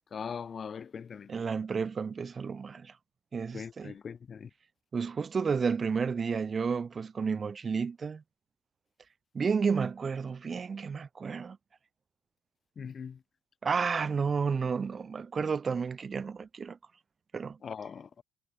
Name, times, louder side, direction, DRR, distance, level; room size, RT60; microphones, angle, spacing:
voice 1, 0.1-1.3 3.5-4.5 12.8-13.2 17.6-18.2, left 6 dB, 40° left, 1.9 m, -40 dB
voice 2, 1.3-2.9 3.3-3.9 4.9-8.2 9.3-11.6 13.6-16.8 17.3-17.6, right 5 dB, 35° right, 4.5 m, -31 dB
hypercardioid pair, 50°, 0 cm